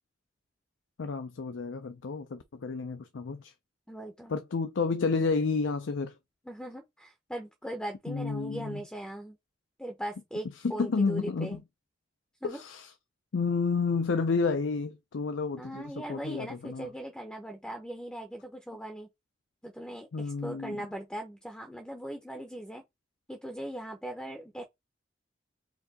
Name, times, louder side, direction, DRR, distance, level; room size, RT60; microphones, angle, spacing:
voice 1, 1.0-3.5 4.3-6.1 8.1-8.8 10.6-11.6 12.4-12.9 13.3-16.9 20.1-20.8, left 4 dB, 80° left, 0.5 m, -30 dB
voice 2, 3.9-4.3 6.5-9.4 9.8-11.6 12.4-12.6 15.6-19.1 19.6-22.8 23.3-24.6, right 1 dB, 5° left, 0.6 m, -39 dB
4.5 x 2.7 x 3.9 m
head